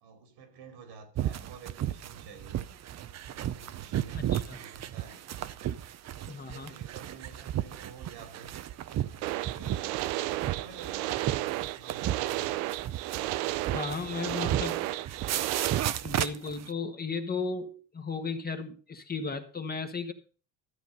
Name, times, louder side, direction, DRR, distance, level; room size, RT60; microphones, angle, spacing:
voice 1, 0.0-2.7 3.3-5.2 5.5-5.8 6.3-8.6 9.0-9.8 10.2-12.6, right 5 dB, 75° right, 3.2 m, -50 dB
sound 1, 1.2-16.7, right 12 dB, 40° right, 0.7 m, -34 dB
voice 2, 4.1-4.6 6.3-6.7 13.7-14.9 16.0-20.1, left 4 dB, 25° left, 1.3 m, -35 dB
sound 2, 9.2-15.8, right 16 dB, 90° right, 0.7 m, -33 dB
13.0 x 8.0 x 5.3 m
cardioid pair, 125°, 40 cm